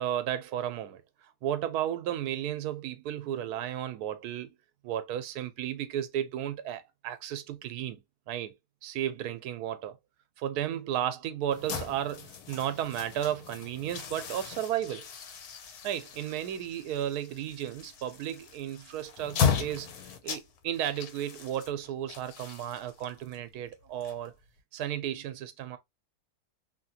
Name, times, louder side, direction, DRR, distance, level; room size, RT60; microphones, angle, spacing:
voice 1, 0.0-4.5 4.8-8.0 8.3-8.5 8.8-10.0 10.4-15.1 15.8-19.9 20.2-24.3 24.7-25.8, right 11 dB, 85° right, 1.1 m, -34 dB
sound 1, 11.5-24.6, left 7 dB, 80° left, 1.2 m, -36 dB
2.8 x 2.8 x 2.7 m
omnidirectional pair, 1.6 m